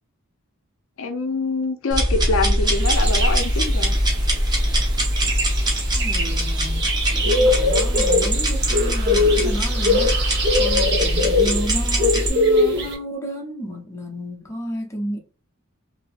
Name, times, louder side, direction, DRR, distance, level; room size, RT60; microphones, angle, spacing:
voice 1, 1.0-3.9, left 3 dB, 60° left, 0.5 m, -25 dB
sound 1, 1.9-12.3, equal, 20° right, 0.8 m, -22 dB
sound 2, 2.7-12.9, left 1 dB, 50° right, 0.9 m, -22 dB
voice 2, 5.9-6.9 7.1-15.2, equal, 10° left, 0.6 m, -32 dB
3.4 x 2.7 x 2.4 m
head